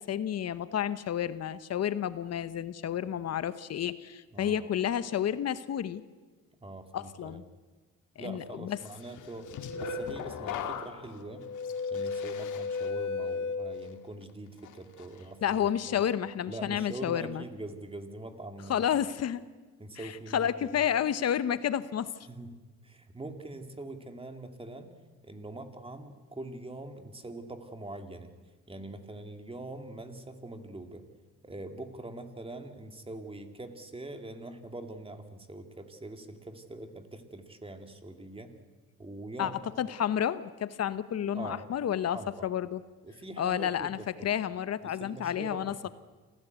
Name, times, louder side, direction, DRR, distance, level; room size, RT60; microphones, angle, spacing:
voice 1, 0.0-6.0 6.9-7.4 8.2-8.8 15.4-17.4 18.7-19.4 20.0-22.1 39.4-39.5 39.8-42.8 43.4-45.9, left 9 dB, 55° left, 14 dB, 0.9 m, -30 dB
voice 2, 6.6-7.4 8.2-9.5 9.8-11.5 11.9-15.7 15.9-16.0 16.5-18.8 19.8-20.5 22.3-24.9 25.2-28.3 28.7-31.0 31.4-38.5 39.0-39.7 41.3-41.7 42.1-42.5 43.0-44.1 44.8-45.9, right 2 dB, 20° right, 6 dB, 2.6 m, -43 dB
sound 1, 9.2-14.2 14.6-15.0, left 5 dB, 80° left, 1.9 m, -35 dB
26.5 x 15.5 x 8.1 m, 1.3 s
cardioid pair, 90°, 30 cm